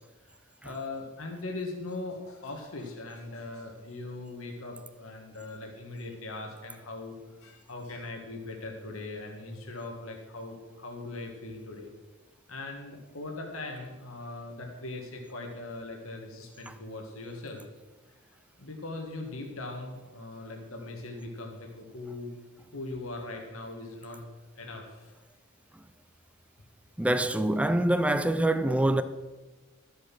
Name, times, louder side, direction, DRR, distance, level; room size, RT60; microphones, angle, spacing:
voice 1, 0.6-11.9 12.5-17.6 18.6-22.3 22.7-24.2 24.6-25.1, left 2 dB, 80° left, 1.8 m, -40 dB
voice 2, 27.0-29.0, right 1 dB, 5° right, 0.5 m, -25 dB
13.0 x 7.6 x 6.1 m
head